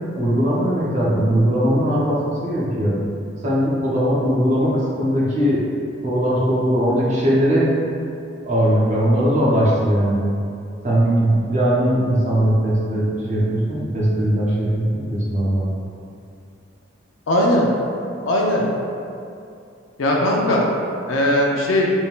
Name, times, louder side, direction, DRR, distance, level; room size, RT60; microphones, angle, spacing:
voice 1, 0.2-3.0 3.4-5.7 6.0-7.7 8.4-10.2 10.8-15.7, equal, 40° right, -7 dB, 0.7 m, -19 dB
voice 2, 17.3-17.7 18.3-18.7 20.0-20.6 21.1-21.9, left 1 dB, 85° left, -2 dB, 0.5 m, -18 dB
3.5 x 2.6 x 2.3 m, 2.5 s
head